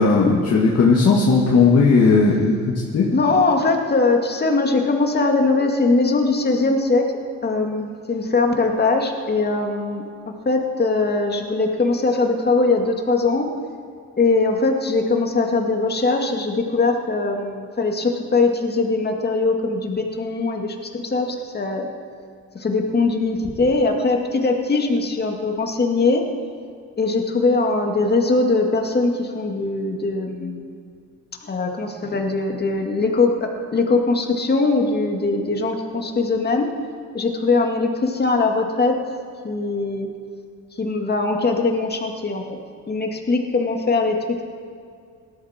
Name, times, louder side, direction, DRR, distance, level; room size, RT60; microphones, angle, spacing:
voice 1, 0.0-2.6 2.9-3.1, left 4 dB, 55° left, -3 dB, 1.9 m, -16 dB
voice 2, 3.1-7.0 7.4-13.5 14.2-21.9 22.5-26.2 27.0-30.6 31.4-36.7 37.1-38.9 39.4-40.1 40.8-42.6 42.9-44.2, left 3 dB, 35° left, 2 dB, 2.2 m, -21 dB
18.0 x 13.0 x 4.4 m, 2.3 s
cardioid pair, 90°, 30 cm